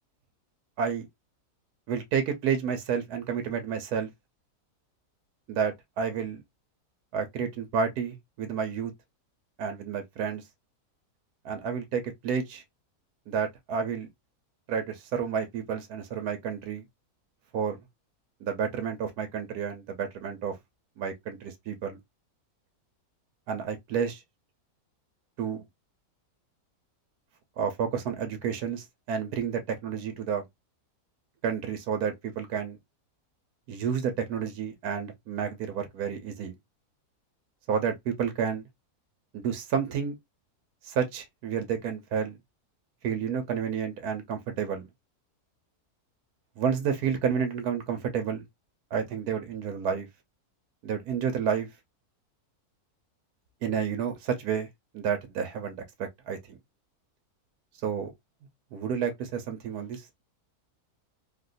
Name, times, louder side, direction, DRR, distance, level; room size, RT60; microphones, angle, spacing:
voice 1, 1.9-4.1 5.5-6.4 7.1-8.9 9.6-10.4 11.4-12.6 13.3-14.1 14.7-16.8 17.5-17.8 18.4-20.5 21.0-22.0 23.5-24.2 25.4-25.6 27.6-30.4 31.4-32.8 33.7-36.6 37.7-38.7 39.3-40.1 40.8-42.4 43.0-44.9 46.6-48.4 48.9-50.1 50.8-51.7 53.6-54.7 54.9-56.6 57.8-58.1 58.7-60.0, right 7 dB, 80° right, 1.4 m, -30 dB
3.9 x 2.2 x 2.6 m
omnidirectional pair, 1.6 m